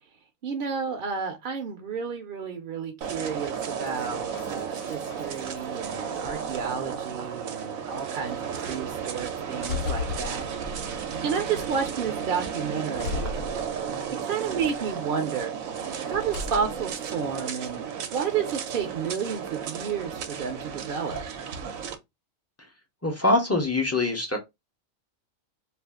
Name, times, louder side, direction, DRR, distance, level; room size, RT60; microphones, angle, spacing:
voice 1, 0.4-10.5 11.2-13.5 14.2-15.5 16.0-17.9 18.1-21.2, right 6 dB, 55° right, 0.6 m, -31 dB
sound 1, 3.0-21.9, right 7 dB, 85° right, 1.0 m, -34 dB
sound 2, 3.9-5.8 6.2-7.0 7.7-7.8 8.3-8.6 9.2-11.1 11.6-12.1 12.9-14.1 14.6-15.2 16.1-16.9, left 5 dB, 70° left, 0.9 m, -37 dB
voice 2, 23.0-24.4, left 2 dB, 20° left, 0.4 m, -24 dB
2.5 x 2.3 x 3.4 m
omnidirectional pair, 1.4 m